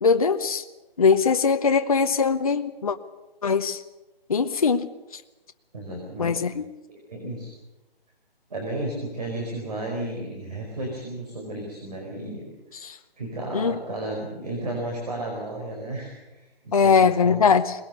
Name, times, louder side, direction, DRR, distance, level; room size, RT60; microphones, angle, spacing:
voice 1, 0.0-0.6 1.0-3.0 3.4-3.8 4.3-5.2 6.2-6.7 12.7-13.0 13.5-13.8 16.7-17.7, left 5 dB, 35° left, 7 dB, 0.7 m, -21 dB
voice 2, 5.7-6.3 6.9-7.5 8.5-12.8 13.2-17.4, right 1 dB, 45° right, 0 dB, 4.9 m, -33 dB
23.0 x 20.0 x 6.8 m, 1.1 s
hypercardioid pair, 170°, 30 cm